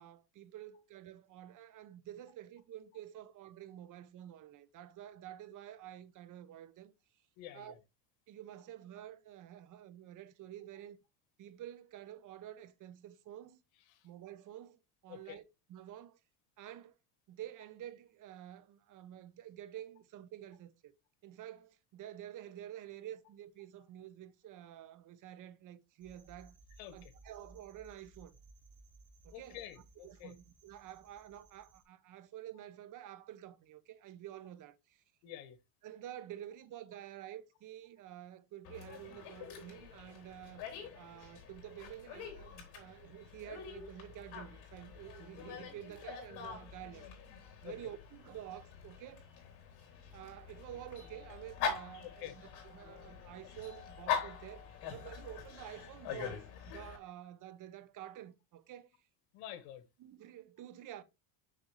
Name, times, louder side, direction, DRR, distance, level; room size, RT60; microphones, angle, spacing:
voice 1, 0.0-6.9 7.5-7.7 8.3-11.0 11.4-13.6 14.0-15.4 15.7-16.2 16.6-16.9 17.3-20.9 21.2-26.6 26.9-28.4 29.2-29.6 30.0-35.0 35.8-40.6 40.9-47.1 47.6-49.3 50.1-52.3 52.6-58.9 60.0-61.0, right 12 dB, 45° right, 0.9 m, -49 dB
voice 2, 7.4-7.8 13.9-14.1 15.1-15.4 26.8-27.1 29.3-30.3 35.2-35.6 47.6-47.9 52.2-52.4 59.3-59.8, left 11 dB, 85° left, 1.5 m, -48 dB
sound 1, 26.0-31.8, right 2 dB, 10° left, 2.7 m, -61 dB
Dog, 38.6-57.0, left 7 dB, 65° left, 3.4 m, -44 dB
6.6 x 6.1 x 3.2 m
cardioid pair, 130°, 42 cm